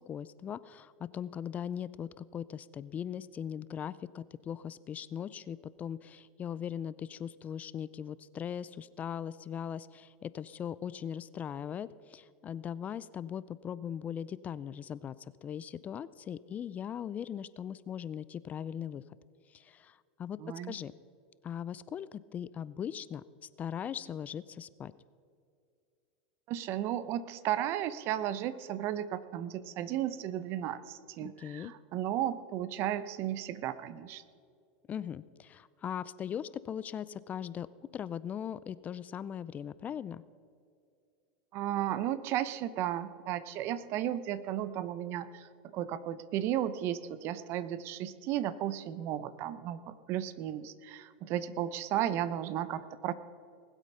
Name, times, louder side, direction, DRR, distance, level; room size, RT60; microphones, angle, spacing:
voice 1, 0.1-19.0 19.5-20.4 20.7-20.9 21.4-23.2 23.6-24.9 31.2-31.7 34.9-37.7 37.9-40.2, left 9 dB, 30° left, 17 dB, 0.4 m, -39 dB
voice 2, 20.4-20.7 26.5-34.2 41.5-45.5 45.7-53.1, right 11 dB, 50° right, 15 dB, 0.8 m, -34 dB
20.0 x 8.2 x 5.6 m, 2.3 s
supercardioid pair, 120°, 6 cm